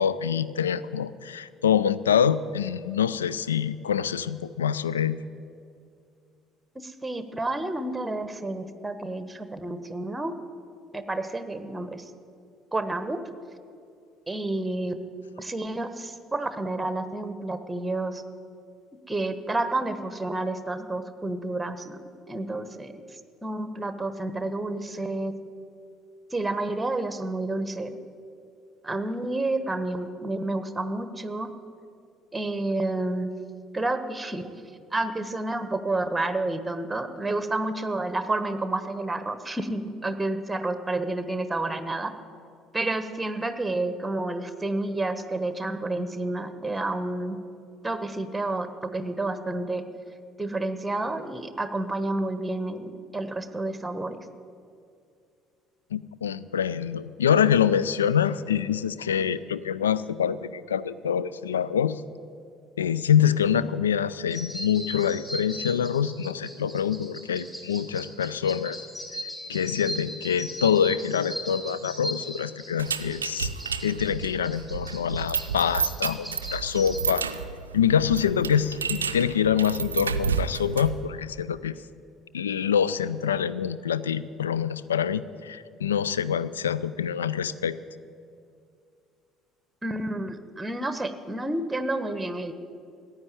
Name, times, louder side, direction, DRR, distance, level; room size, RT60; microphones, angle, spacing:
voice 1, 0.0-5.2 55.9-62.0 62.8-68.8 69.5-73.5 73.8-77.2 77.7-81.8 82.3-87.8, left 8 dB, 75° left, 16 dB, 0.4 m, -25 dB
voice 2, 6.7-10.4 10.9-12.0 12.7-13.2 14.3-15.0 15.4-18.2 19.1-22.0 22.3-23.0 23.4-25.3 26.3-27.9 28.8-31.5 32.3-33.3 33.7-34.4 34.9-42.1 42.7-47.4 47.8-49.8 50.4-54.2 89.8-92.5, right 2 dB, 10° right, 11 dB, 1.2 m, -30 dB
sound 1, 64.3-77.0, equal, 10° left, 3.3 m, -39 dB
sound 2, 72.8-81.0, right 6 dB, 80° right, 0.5 m, -31 dB
15.0 x 9.5 x 9.2 m, 2.4 s
figure-of-eight pair, 55°, 0 cm